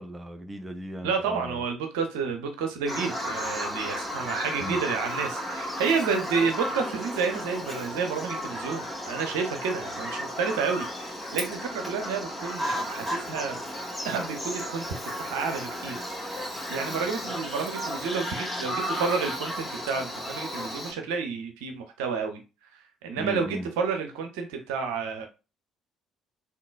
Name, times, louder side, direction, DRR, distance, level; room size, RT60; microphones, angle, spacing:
voice 1, 0.0-1.6 4.6-4.8 23.2-23.7, right 1 dB, 15° right, 0.5 m, -37 dB
voice 2, 1.0-13.6 14.0-16.0 16.7-22.4 22.7-25.3, right 5 dB, 65° right, 0.5 m, -30 dB
Bird vocalization bird call bird song, 2.9-20.9, equal, 10° left, 1.9 m, -34 dB
3.7 x 2.7 x 2.2 m
figure-of-eight pair, 50°, 0 cm